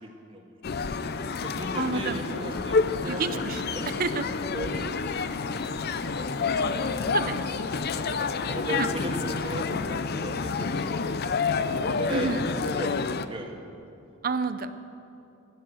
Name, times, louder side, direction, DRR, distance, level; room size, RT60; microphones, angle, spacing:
voice 1, 0.0-0.5 1.4-3.9 4.5-4.9 5.3-6.1 7.6-8.1 8.5-11.4 11.7-13.5, right 1 dB, 25° right, 2 dB, 1.6 m, -37 dB
sound 1, 0.6-13.3, left 4 dB, 50° left, 0.6 m, -29 dB
voice 2, 1.8-2.2 3.1-3.6 4.0-4.2 7.1-7.4 8.8-8.9 12.1-12.4 14.2-14.7, right 5 dB, 45° right, 11 dB, 0.6 m, -28 dB
14.5 x 10.0 x 7.7 m, 2.7 s
head